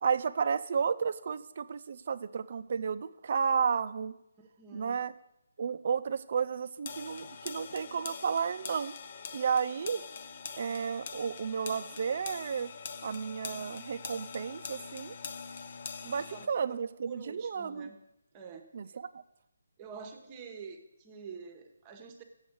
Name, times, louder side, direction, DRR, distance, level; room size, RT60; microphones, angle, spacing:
voice 1, 0.0-4.1 4.7-5.1 5.6-8.9 9.3-10.0 10.6-12.7 13.0-15.1 16.0-17.9 18.7-19.2, right 6 dB, 45° right, 13 dB, 0.5 m, -32 dB
voice 2, 4.4-5.0 16.1-18.0 18.3-19.0 19.8-22.2, right 5 dB, 20° right, 5 dB, 1.0 m, -48 dB
sound 1, 6.9-16.5, left 5 dB, 35° left, 0.6 m, -43 dB
8.4 x 7.1 x 8.0 m, 0.85 s
hypercardioid pair, 165°, 0 cm